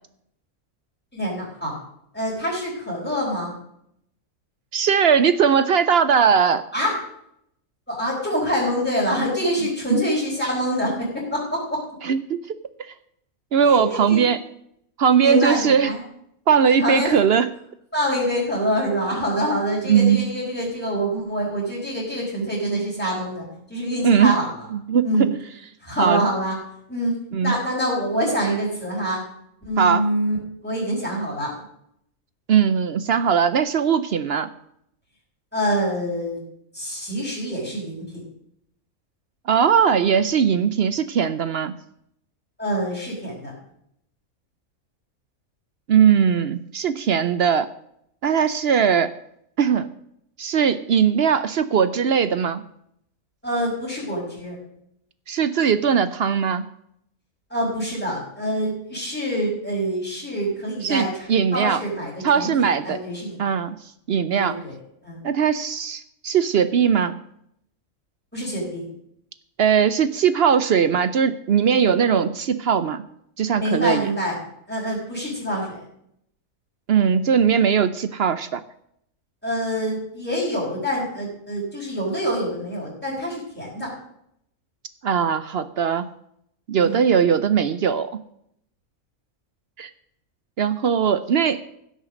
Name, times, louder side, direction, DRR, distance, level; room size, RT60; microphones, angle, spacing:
voice 1, 1.1-1.7 2.1-3.5 6.7-7.0 7.9-11.8 13.7-14.2 15.2-16.0 16.6-17.2 17.9-24.5 25.0-25.3 25.8-26.6 26.9-29.2 29.6-30.4 30.6-31.5 35.5-36.4 36.7-38.2 42.6-43.5 53.4-54.6 57.5-63.4 64.3-64.8 65.0-65.2 68.3-68.8 73.5-74.4 74.7-75.8 79.4-83.9 86.8-87.0, equal, 10° left, -9 dB, 4.6 m, -26 dB
voice 2, 4.7-6.6 9.9-10.0 12.0-12.4 13.5-14.4 15.0-15.9 16.5-17.5 19.8-20.2 24.0-24.4 24.7-25.3 26.0-26.3 27.3-27.5 29.8-30.1 32.5-34.5 39.5-41.7 45.9-47.7 48.2-49.1 49.6-49.9 50.4-52.6 55.3-56.7 60.8-61.8 62.2-63.0 63.4-63.8 64.1-64.6 65.2-67.2 69.6-73.0 73.4-74.1 76.9-78.6 85.0-86.1 86.7-88.2 89.8-89.9 90.6-91.6, right 7 dB, 60° right, 13 dB, 0.7 m, -19 dB
16.0 x 6.5 x 6.3 m, 0.73 s
omnidirectional pair, 1.5 m